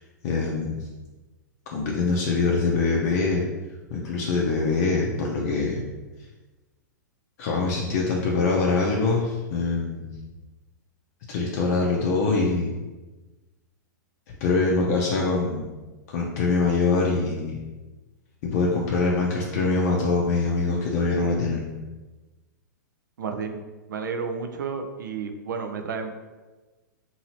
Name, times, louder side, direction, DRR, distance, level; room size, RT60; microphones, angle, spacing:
voice 1, 0.2-0.8 1.7-3.4 3.9-5.8 7.4-10.1 11.3-12.7 14.4-15.6 16.1-17.6 18.4-21.6, left 3 dB, 50° left, -2 dB, 0.5 m, -24 dB
voice 2, 23.2-23.6 23.9-26.1, right 5 dB, 75° right, 6 dB, 0.4 m, -31 dB
2.8 x 2.6 x 2.9 m, 1.2 s
hypercardioid pair, 115°, 10 cm